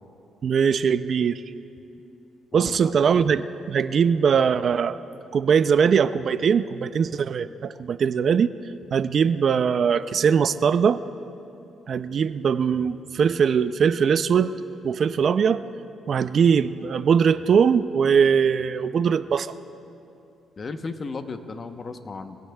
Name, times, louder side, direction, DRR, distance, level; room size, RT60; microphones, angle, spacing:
voice 1, 0.4-1.4 2.5-5.0 5.3-8.5 8.9-11.0 11.9-14.5 14.8-15.6 16.1-19.5, right 6 dB, 55° right, 14 dB, 0.4 m, -21 dB
voice 2, 20.6-22.4, left 4 dB, 40° left, 8 dB, 0.9 m, -34 dB
23.5 x 17.0 x 2.3 m, 2.8 s
cardioid pair, 90°, 0 cm